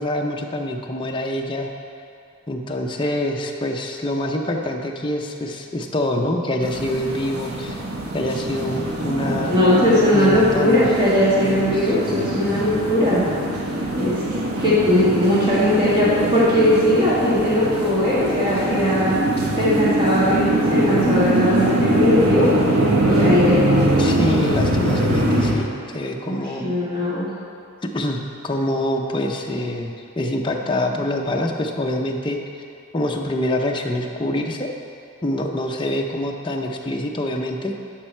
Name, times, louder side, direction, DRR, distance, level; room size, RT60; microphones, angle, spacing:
voice 1, 0.0-1.7 2.5-7.8 8.1-9.5 10.1-10.9 11.7-11.9 24.0-26.7 27.9-32.4 32.9-34.7 35.2-37.7, left 1 dB, 20° left, 1 dB, 0.6 m, -25 dB
sound 1, 6.6-25.5, right 1 dB, 85° right, 1.2 m, -22 dB
voice 2, 9.5-13.4 13.9-14.2 14.6-19.2 19.6-22.5 23.0-23.6 26.3-27.3, left 1 dB, 20° right, -9 dB, 2.0 m, -19 dB
12.0 x 5.4 x 4.4 m, 2.6 s
head